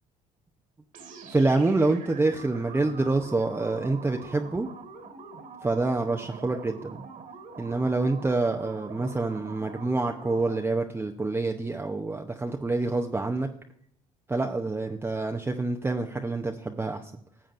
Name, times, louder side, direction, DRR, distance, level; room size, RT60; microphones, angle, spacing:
sound 1, 0.9-10.8, right 5 dB, 55° right, 1.8 m, -44 dB
voice 1, 1.3-4.7 5.6-7.0 7.6-13.5 14.3-17.1, right 3 dB, 15° right, 3 dB, 0.7 m, -27 dB
14.5 x 7.5 x 2.6 m, 0.67 s
supercardioid pair, 75°, 16 cm